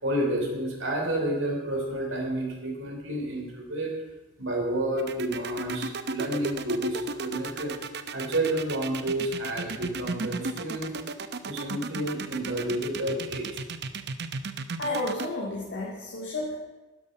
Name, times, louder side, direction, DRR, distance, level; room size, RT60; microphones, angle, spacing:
voice 1, 0.0-3.9 4.4-7.7 8.1-10.9 11.5-13.6, right 1 dB, 70° right, 0 dB, 3.5 m, -30 dB
sound 1, 5.0-15.3, right 4 dB, 55° right, 0.8 m, -34 dB
voice 2, 14.8-16.6, left 2 dB, 60° left, -4 dB, 2.2 m, -31 dB
12.5 x 11.0 x 5.4 m, 1.2 s
head